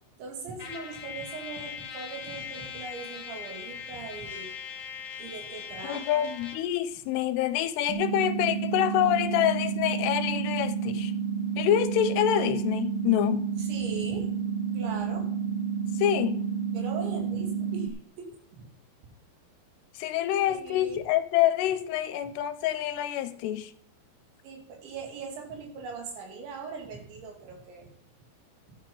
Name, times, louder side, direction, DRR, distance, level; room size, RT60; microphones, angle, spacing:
voice 1, 0.2-4.5 5.2-6.2 13.6-14.3 14.7-15.3 16.7-18.7 19.0-19.1 20.4-21.0 24.4-27.9, right 5 dB, 80° right, 5.0 m, -40 dB
Trumpet, 0.6-6.7, left 7 dB, 60° left, 1.7 m, -40 dB
voice 2, 5.8-11.1 11.6-13.6 16.0-16.4 20.0-23.7, left 12 dB, 80° left, 2.5 m, -26 dB
sound 1, 7.9-17.9, right 7 dB, 65° right, 1.4 m, -30 dB
13.0 x 9.3 x 5.4 m
omnidirectional pair, 5.2 m